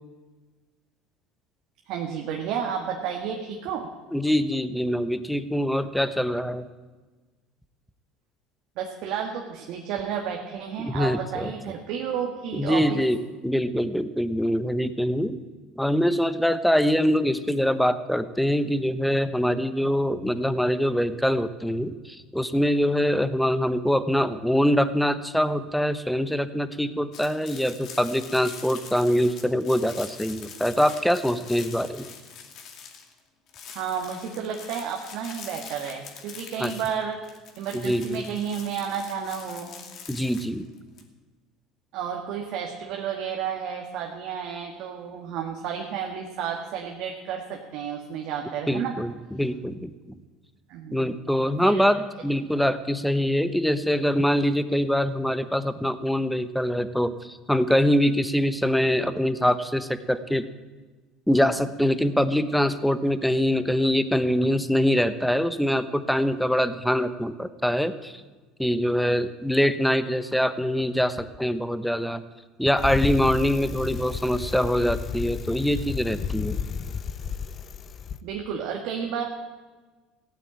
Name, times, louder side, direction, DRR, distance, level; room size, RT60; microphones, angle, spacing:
voice 1, 1.9-3.9 8.8-13.0 33.7-37.2 37.6-39.7 41.9-49.0 50.7-51.1 51.6-51.9 78.2-79.2, right 7 dB, 70° right, 1 dB, 1.8 m, -31 dB
voice 2, 4.1-6.6 10.8-11.5 12.5-15.4 15.8-32.1 36.6-36.7 37.7-38.3 40.1-40.7 48.7-49.9 50.9-60.5 61.3-68.2 68.6-72.2 72.6-76.6, equal, ahead, 12 dB, 1.0 m, -24 dB
sound 1, 27.1-33.2 33.5-41.0, left 6 dB, 55° left, 2.6 m, -44 dB
Bicycle, 72.8-78.2, left 6 dB, 40° left, 0.8 m, -32 dB
16.0 x 9.1 x 8.8 m, 1.3 s
supercardioid pair, 95°, 0 cm